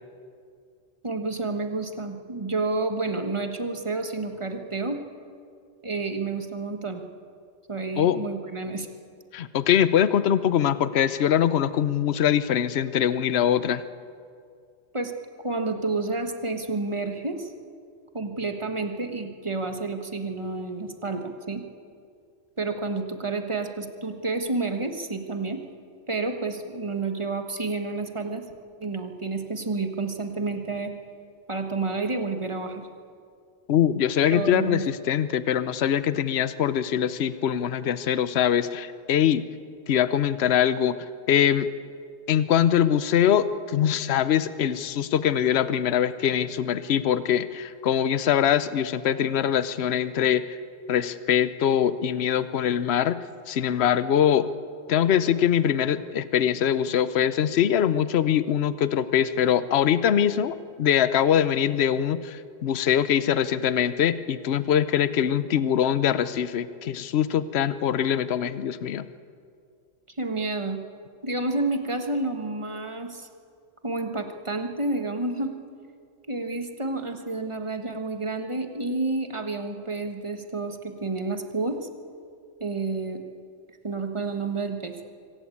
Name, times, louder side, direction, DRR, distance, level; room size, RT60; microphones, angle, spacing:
voice 1, 1.0-5.0 5.8-7.0 7.7-8.9 14.9-15.1 15.4-17.5 18.1-21.6 22.6-25.6 26.1-28.5 28.8-30.9 31.5-32.9 34.2-34.9 70.2-70.8 71.2-73.3 73.8-75.5 76.3-81.8 82.6-83.2 83.8-84.9, right 3 dB, 25° right, 5 dB, 1.5 m, -30 dB
voice 2, 9.3-13.8 33.7-39.4 39.9-41.0 41.3-41.7 42.3-50.4 50.9-54.5 54.9-69.1, left 9 dB, 65° left, 14 dB, 1.0 m, -23 dB
24.5 x 17.0 x 8.5 m, 2.3 s
omnidirectional pair, 1.2 m